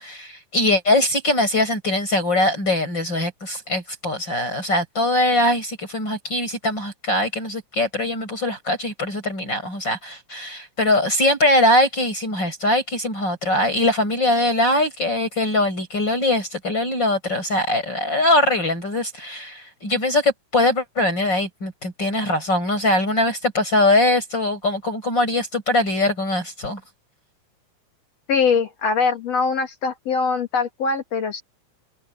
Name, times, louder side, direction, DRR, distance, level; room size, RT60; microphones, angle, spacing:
voice 1, 0.0-26.8, left 1 dB, 35° left, 7.8 m, -21 dB
voice 2, 28.3-31.4, left 5 dB, 55° left, 3.9 m, -22 dB
omnidirectional pair, 3.5 m